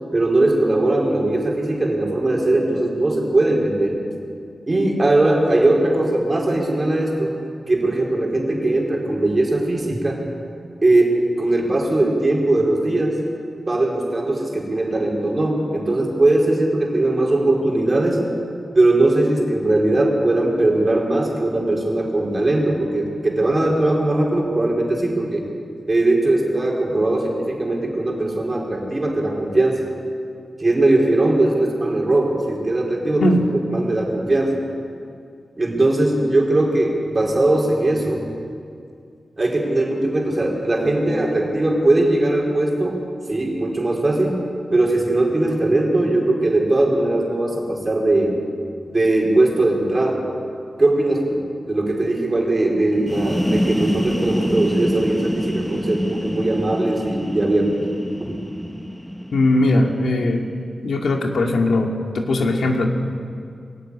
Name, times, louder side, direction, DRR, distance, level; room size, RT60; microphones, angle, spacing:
voice 1, 0.1-4.0 4.7-7.3 7.7-10.2 10.8-13.2 13.6-18.2 18.7-25.4 25.9-29.8 30.6-34.6 35.6-38.2 39.4-43.0 43.3-44.4 44.7-48.4 48.9-50.2 50.8-51.4 51.6-57.7 58.2-58.4, right 2 dB, 30° right, -1 dB, 4.5 m, -19 dB
sound 1, 52.9-60.5, equal, 5° left, 1.1 m, -26 dB
voice 2, 59.3-60.5 60.8-62.9, left 2 dB, 85° left, 2 dB, 2.3 m, -19 dB
21.5 x 15.0 x 9.9 m, 2.3 s
wide cardioid pair, 120°, 0 cm